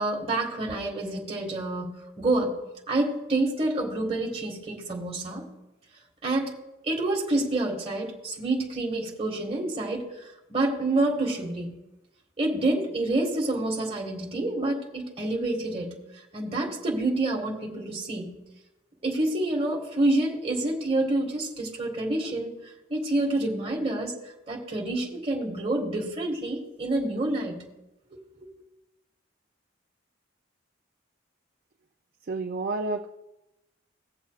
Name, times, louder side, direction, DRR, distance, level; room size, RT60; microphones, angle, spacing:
voice 1, 0.0-1.9 2.2-2.6 2.9-5.5 6.2-6.5 6.8-10.1 10.5-11.8 12.4-16.0 16.3-18.4 19.0-22.5 22.9-24.1 24.5-27.7 28.1-28.2, right 2 dB, 30° right, -1 dB, 1.8 m, -28 dB
voice 2, 32.3-33.1, right 3 dB, 45° right, 3 dB, 0.4 m, -29 dB
19.0 x 7.1 x 2.4 m, 0.97 s
head